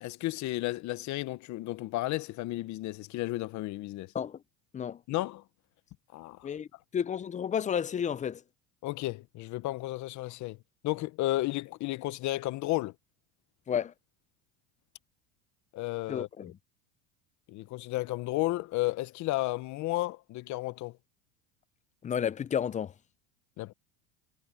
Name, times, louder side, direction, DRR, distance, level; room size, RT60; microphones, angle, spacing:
voice 1, 0.0-4.1 5.1-5.4 6.1-6.5 8.8-10.6 10.8-12.9 15.7-16.5 17.5-20.9 23.6-23.7, left 18 dB, 50° left, 1.2 m, -33 dB
voice 2, 6.9-8.4 13.7-13.9 16.1-16.5 22.0-22.9, left 8 dB, 20° left, 0.6 m, -31 dB
supercardioid pair, 110°, 36 cm